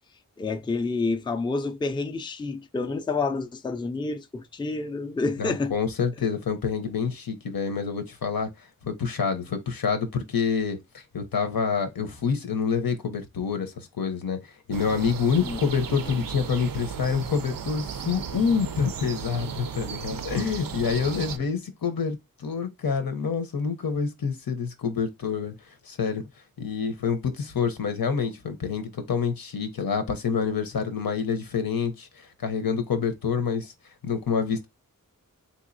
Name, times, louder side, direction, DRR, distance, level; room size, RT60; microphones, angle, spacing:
voice 1, 0.4-5.7 15.4-15.6, left 3 dB, 15° left, 0.4 m, -29 dB
voice 2, 5.4-8.5 8.8-25.5 25.8-26.2 26.6-33.7 34.0-34.7, left 6 dB, 85° left, 0.8 m, -27 dB
sound 1, 14.7-21.4, right 7 dB, 75° right, 0.5 m, -35 dB
3.7 x 2.9 x 2.6 m
wide cardioid pair, 80°, 34 cm